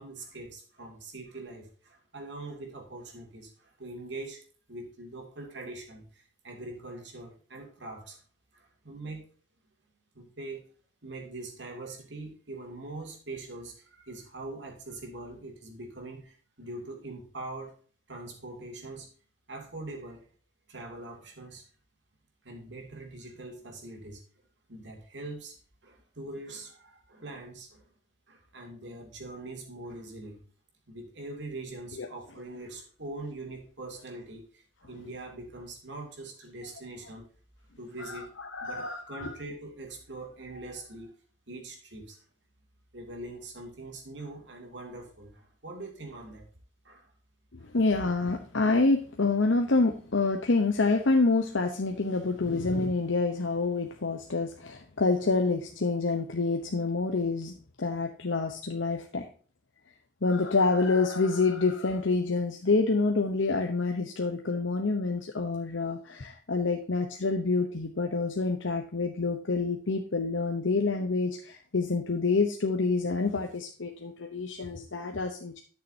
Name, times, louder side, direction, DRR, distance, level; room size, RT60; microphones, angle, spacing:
voice 1, 0.0-4.4 4.7-8.2 8.5-9.2 10.1-10.7 11.0-17.7 18.1-19.1 19.5-20.3 20.7-21.6 22.4-24.2 24.7-25.5 25.8-27.8 28.3-30.4 30.9-37.3 37.8-38.3 38.6-41.2 41.5-42.2 42.9-46.5 46.8-47.1 47.6-47.7, right 2 dB, 65° right, 1 dB, 2.9 m, -43 dB
voice 2, 38.0-39.3 47.7-59.3 60.2-75.6, left 3 dB, 85° left, 3 dB, 1.0 m, -27 dB
12.0 x 6.7 x 2.8 m, 0.42 s
head